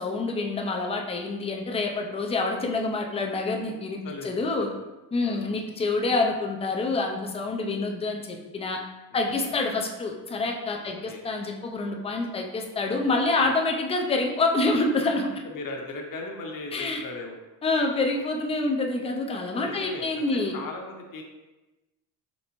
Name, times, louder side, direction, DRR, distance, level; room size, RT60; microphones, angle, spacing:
voice 1, 0.0-4.7 5.1-8.8 9.1-15.3 16.7-17.0 17.6-20.5, left 3 dB, 15° left, 2 dB, 0.3 m, -27 dB
voice 2, 4.0-4.8 5.2-5.5 9.1-9.5 10.8-11.2 13.4-13.6 15.4-17.4 19.6-21.2, left 2 dB, 45° left, 1 dB, 0.8 m, -38 dB
4.1 x 3.3 x 2.9 m, 1.1 s
cardioid pair, 115°, 47 cm